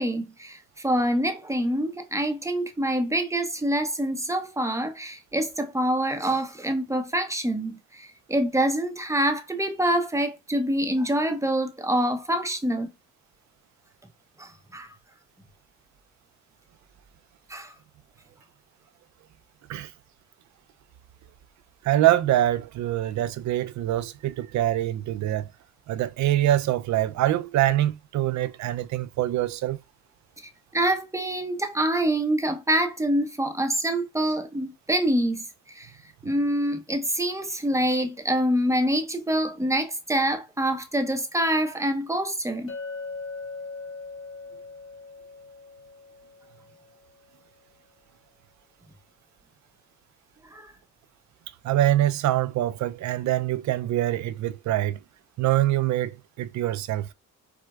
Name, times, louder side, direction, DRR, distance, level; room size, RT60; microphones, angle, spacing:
voice 1, 0.0-12.9 14.4-14.9 17.5-17.7 30.7-35.9 36.2-42.7 50.5-50.7, right 1 dB, 10° right, 0.8 m, -26 dB
voice 2, 21.8-25.5 25.9-29.8 51.6-55.0 55.4-57.1, right 13 dB, 55° right, 0.4 m, -24 dB
Chink clink, 42.7-46.9, left 4 dB, 40° left, 1.0 m, -40 dB
4.4 x 2.1 x 2.3 m
supercardioid pair, 60°, 34 cm